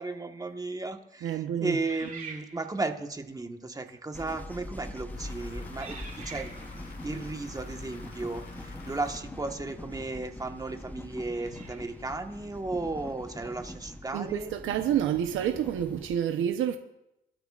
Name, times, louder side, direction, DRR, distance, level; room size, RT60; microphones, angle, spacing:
voice 1, 0.0-6.5 6.8-14.5, right 3 dB, 20° right, 1.4 m, -35 dB
voice 2, 1.2-1.8 14.1-16.8, right 10 dB, 85° right, 0.9 m, -28 dB
sound 1, 1.8-3.0 3.8-4.0 4.7-5.0 5.8-6.9 9.6-9.7 11.2-12.1, right 5 dB, 40° right, 2.5 m, -46 dB
sound 2, 4.1-16.2, left 1 dB, 10° left, 0.9 m, -43 dB
sound 3, 5.1-10.0, left 2 dB, 65° left, 4.0 m, -46 dB
22.5 x 12.5 x 2.5 m
cardioid pair, 90°, 20 cm